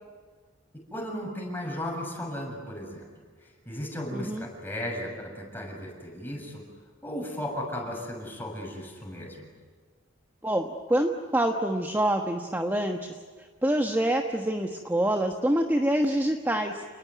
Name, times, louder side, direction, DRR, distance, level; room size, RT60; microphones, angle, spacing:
voice 1, 0.9-3.1 3.7-6.6 7.0-9.5, left 1 dB, 10° left, 0 dB, 7.1 m, -35 dB
voice 2, 4.1-4.4 10.4-16.8, right 1 dB, 10° right, 3 dB, 1.3 m, -26 dB
29.5 x 19.5 x 9.5 m, 1.5 s
head